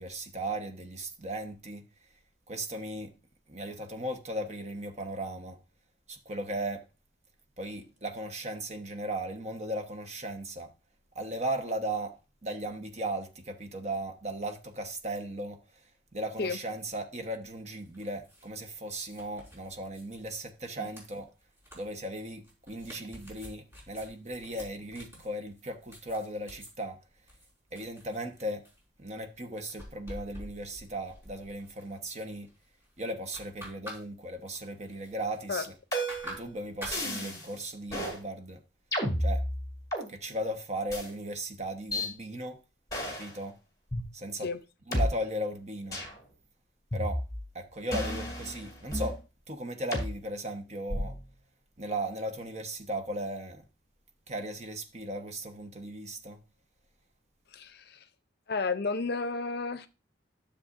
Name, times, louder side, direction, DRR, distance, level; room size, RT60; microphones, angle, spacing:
voice 1, 0.0-1.8 2.5-3.1 3.5-5.6 6.1-6.8 7.6-10.7 11.1-12.1 12.4-15.6 16.1-21.3 21.7-27.0 27.7-28.6 29.0-32.5 33.0-35.7 36.2-38.6 39.2-39.4 40.1-42.6 43.1-43.5 44.1-44.5 44.9-46.0 46.9-47.2 47.5-49.2 49.5-51.2 51.8-53.6 54.3-56.4, right 1 dB, 35° right, 1.0 m, -37 dB
sound 1, 17.7-26.7 27.3-28.8 29.3-32.2 32.4-32.9 33.1-34.0 34.3-35.8 36.1-37.0, equal, 15° right, 4.0 m, -48 dB
sound 2, 35.9-36.4 36.9-37.5 37.9-38.2 38.9-40.1 40.9-41.1 41.9-42.1 42.9-43.3 43.9-44.0 44.9-45.0 45.9-46.2 46.9-47.5 47.9-49.2 49.9-50.1 50.9-51.3, equal, 20° left, 2.5 m, -32 dB
voice 2, 57.5-58.0 58.5-59.9, left 4 dB, 55° left, 0.6 m, -32 dB
12.5 x 7.0 x 2.5 m
head